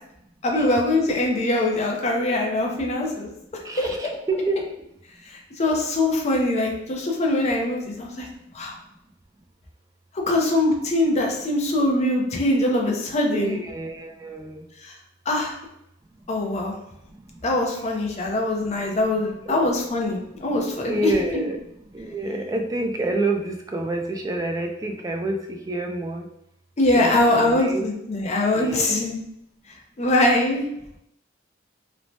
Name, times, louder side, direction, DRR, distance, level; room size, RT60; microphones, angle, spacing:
voice 1, 0.4-3.3 3.8-3.9 5.3-8.3 8.5-8.7 10.3-13.6 14.8-14.9 15.3-15.5 16.3-16.7 17.4-21.4 26.8-29.2 30.0-30.7, left 1 dB, 35° left, 0 dB, 0.5 m, -22 dB
voice 2, 3.6-4.6 13.3-14.6 19.5-19.6 20.9-21.6 21.9-26.3 26.9-27.9 28.5-29.1, right 2 dB, 15° right, 3 dB, 0.3 m, -28 dB
3.0 x 2.1 x 2.6 m, 0.79 s
head